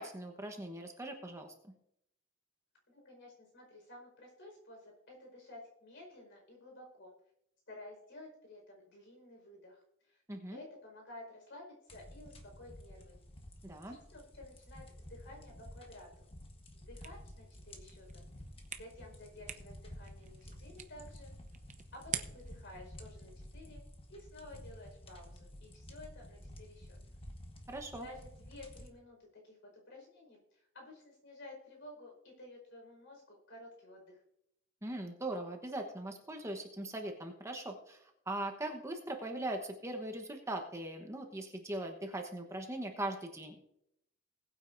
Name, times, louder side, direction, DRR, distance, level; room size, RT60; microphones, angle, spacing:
voice 1, 0.0-1.7 10.3-10.6 13.6-13.9 27.7-28.0 34.8-43.5, right 1 dB, 15° right, 3 dB, 1.1 m, -40 dB
voice 2, 2.9-7.1 7.7-10.2 10.5-13.2 13.8-16.3 16.7-18.3 18.8-21.3 21.9-23.8 24.1-27.0 28.0-34.2, left 1 dB, 60° left, 1 dB, 4.9 m, -53 dB
sound 1, 11.9-28.9, left 1 dB, 25° left, 1.4 m, -52 dB
sound 2, 17.0-22.7, right 8 dB, 35° right, 0.7 m, -47 dB
20.5 x 8.9 x 2.7 m, 0.79 s
head